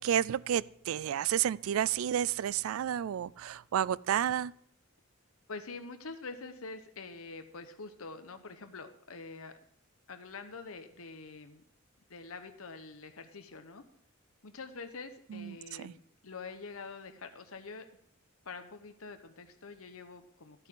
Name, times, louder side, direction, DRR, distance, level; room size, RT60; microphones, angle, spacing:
voice 1, 0.0-4.5 15.3-15.9, right 9 dB, 75° right, 21 dB, 0.3 m, -31 dB
voice 2, 5.5-9.5 10.1-11.6 12.1-13.8 14.4-17.8 18.4-20.7, left 4 dB, 85° left, 8 dB, 1.0 m, -46 dB
12.0 x 8.9 x 3.7 m, 0.70 s
head